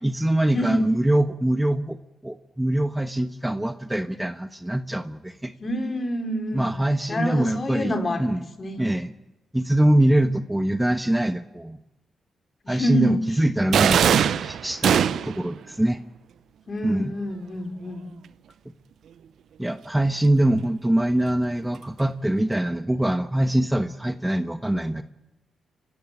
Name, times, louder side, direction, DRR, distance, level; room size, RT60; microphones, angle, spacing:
voice 1, 0.0-2.0 2.2-5.5 6.5-8.4 8.8-9.1 9.5-11.8 12.7-16.0 16.8-17.1 19.6-25.0, right 1 dB, 10° right, 9 dB, 1.2 m, -23 dB
voice 2, 0.5-0.9 5.6-6.7 7.1-8.9 12.6-13.2 16.7-18.1, equal, 45° left, 5 dB, 4.1 m, -27 dB
sound 1, 13.7-15.5, right 8 dB, 70° right, 0.7 m, -20 dB
28.5 x 16.0 x 8.9 m, 1.0 s
hypercardioid pair, 45°, 0 cm